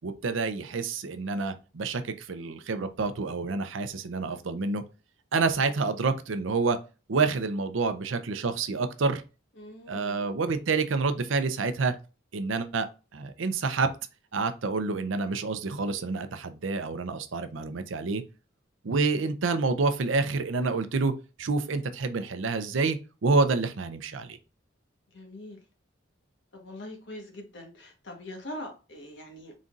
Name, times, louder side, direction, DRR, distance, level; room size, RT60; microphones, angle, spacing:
voice 1, 0.0-4.8 5.3-6.8 7.1-9.2 9.9-11.9 12.3-12.9 13.1-13.9 14.3-18.2 18.8-21.1 21.4-24.4, right 4 dB, 85° right, 0.6 m, -28 dB
voice 2, 9.6-10.2 25.1-25.6 26.5-29.5, left 1 dB, 65° left, 1.3 m, -42 dB
4.1 x 3.9 x 2.5 m
head